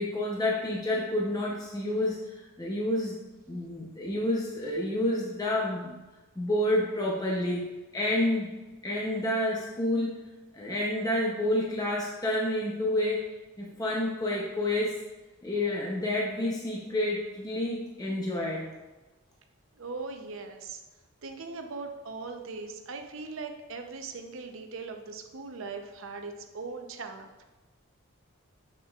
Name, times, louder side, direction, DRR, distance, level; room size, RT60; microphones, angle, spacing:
voice 1, 0.0-3.2 3.5-5.9 6.4-7.6 7.9-8.5 8.8-10.1 10.5-13.3 13.6-15.0 15.4-18.7, left 1 dB, 15° left, -3 dB, 0.7 m, -29 dB
voice 2, 19.8-20.8 21.2-27.4, right 4 dB, 65° right, 5 dB, 0.6 m, -40 dB
7.2 x 6.5 x 2.4 m, 1.1 s
head